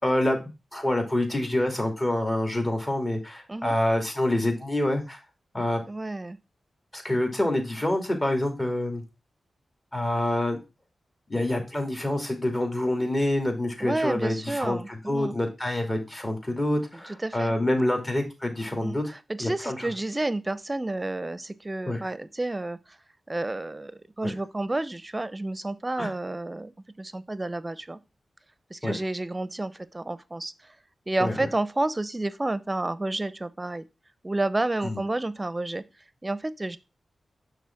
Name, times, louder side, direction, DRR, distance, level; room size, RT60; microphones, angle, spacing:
voice 1, 0.0-5.2 5.5-5.8 6.9-9.0 9.9-10.6 11.3-19.1 19.4-19.8 21.9-22.0 24.2-24.3 26.0-26.1 28.8-28.9 31.2-31.5 34.8-35.0, left 1 dB, 30° left, 2.6 m, -27 dB
voice 2, 5.9-6.4 13.8-15.4 17.1-17.5 18.8-23.0 23.3-28.0 28.7-30.7 31.1-33.9 34.2-35.8 36.2-36.8, right 2 dB, 25° right, 0.6 m, -30 dB
6.1 x 3.6 x 5.8 m
cardioid pair, 45°, 0 cm